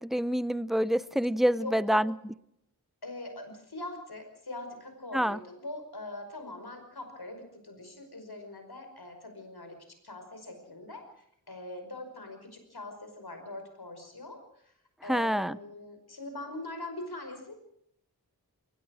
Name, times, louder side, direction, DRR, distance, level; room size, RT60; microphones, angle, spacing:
voice 1, 0.0-2.1 5.1-5.4 15.1-15.6, equal, ahead, 17 dB, 0.7 m, -27 dB
voice 2, 1.6-2.0 3.0-9.8 10.0-14.7 15.0-17.5, left 2 dB, 80° left, 6 dB, 5.3 m, -42 dB
22.5 x 19.5 x 6.3 m, 0.73 s
wide cardioid pair, 45°, 38 cm